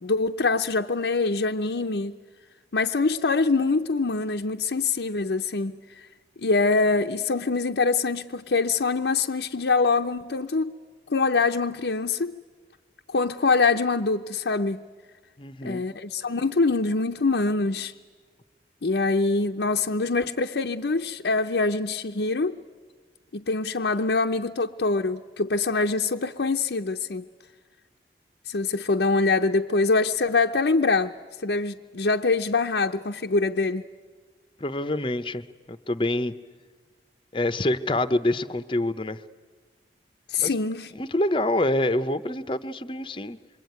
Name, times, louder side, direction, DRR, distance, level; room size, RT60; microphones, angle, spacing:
voice 1, 0.0-2.1 2.7-6.1 6.4-10.8 11.1-12.3 13.1-14.8 15.6-17.9 18.8-22.6 23.3-27.2 28.5-31.1 31.4-33.8 40.3-40.9, left 3 dB, 80° left, 0.7 m, -24 dB
voice 2, 15.4-15.9 34.6-36.3 37.3-39.2 40.4-40.5 40.9-43.4, left 1 dB, 30° left, 0.8 m, -26 dB
27.0 x 24.0 x 9.3 m
head